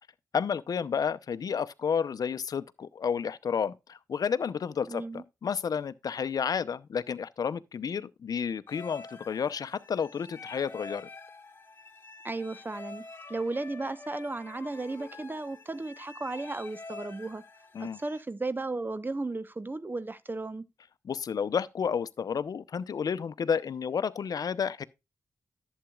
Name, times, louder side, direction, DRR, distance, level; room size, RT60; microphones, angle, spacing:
voice 1, 0.3-11.1 17.7-18.0 21.1-24.8, left 7 dB, 65° left, 0.7 m, -31 dB
voice 2, 4.9-5.2 12.2-17.4 17.8-20.7, right 2 dB, 30° right, 1.0 m, -35 dB
sound 1, 8.7-18.2, left 3 dB, 35° left, 2.1 m, -47 dB
11.5 x 8.1 x 2.4 m
supercardioid pair, 45°, 7 cm